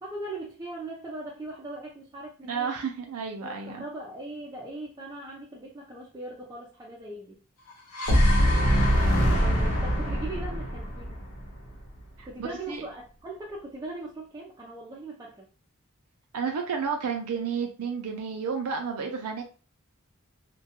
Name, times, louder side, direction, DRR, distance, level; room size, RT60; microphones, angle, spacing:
voice 1, 0.0-2.8 3.4-7.4 9.3-11.2 12.2-15.4, right 2 dB, 15° right, -4 dB, 0.4 m, -40 dB
voice 2, 2.5-3.8 12.2-12.8 16.3-19.4, right 6 dB, 90° right, 3 dB, 0.4 m, -31 dB
sound 1, 7.7-11.9, equal, 90° left, 0.6 m, -23 dB
2.2 x 2.2 x 2.8 m, 0.37 s
head